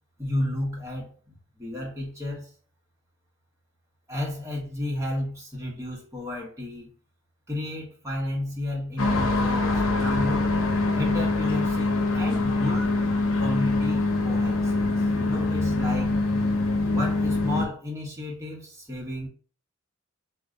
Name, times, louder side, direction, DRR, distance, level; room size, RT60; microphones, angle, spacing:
voice 1, 0.2-2.5 4.1-6.9 7.5-10.6 10.9-13.0 13.4-16.2 16.9-19.3, left 1 dB, 15° right, -2 dB, 0.9 m, -32 dB
sound 1, 9.0-17.7, left 2 dB, 75° left, 0.7 m, -24 dB
2.7 x 2.1 x 3.6 m, 0.39 s
head